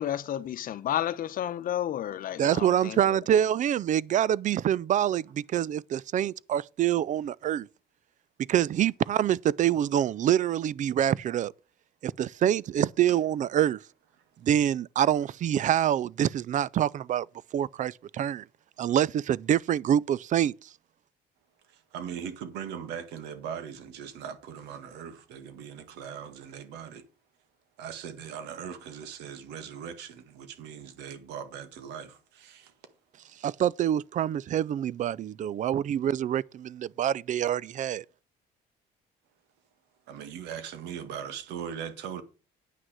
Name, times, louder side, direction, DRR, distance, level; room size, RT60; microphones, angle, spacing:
voice 1, 0.0-3.2, left 11 dB, 55° left, 0.9 m, -31 dB
voice 2, 2.4-7.7 8.5-11.5 12.0-13.8 14.4-17.3 17.5-18.4 18.8-20.7 33.4-38.0, right 10 dB, 45° right, 0.5 m, -26 dB
voice 3, 21.7-27.1 27.8-32.7 40.1-42.2, right 8 dB, 90° right, 1.9 m, -40 dB
9.3 x 6.3 x 6.2 m
cardioid pair, 110°, 17 cm